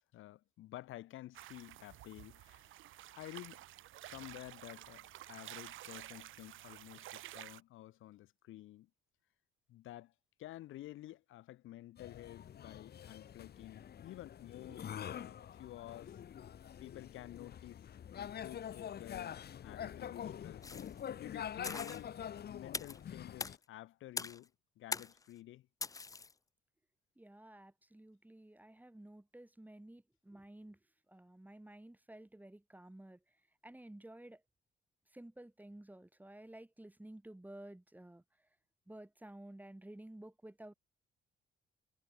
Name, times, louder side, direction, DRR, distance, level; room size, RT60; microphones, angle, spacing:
voice 1, 0.0-2.7 3.1-3.6 4.0-8.9 9.7-10.1 10.4-16.2 16.8-17.8 18.2-20.7 21.2-22.1 22.5-24.5 24.8-25.7, left 15 dB, 85° left, 7.9 m, -51 dB
sound 1, 1.3-7.6, right 14 dB, 85° right, 1.8 m, -51 dB
sound 2, 12.0-23.6, left 9 dB, 55° left, 1.3 m, -46 dB
sound 3, 20.6-21.0 21.6-22.0 22.7-23.0 23.4-23.5 24.2-24.4 24.9-25.2 25.8-26.3, left 4 dB, 15° left, 0.4 m, -41 dB
voice 2, 27.2-30.8 31.1-33.2 33.6-34.4 35.1-38.2 38.9-40.7, right 1 dB, 10° right, 3.9 m, -53 dB
cardioid pair, 90°, 20 cm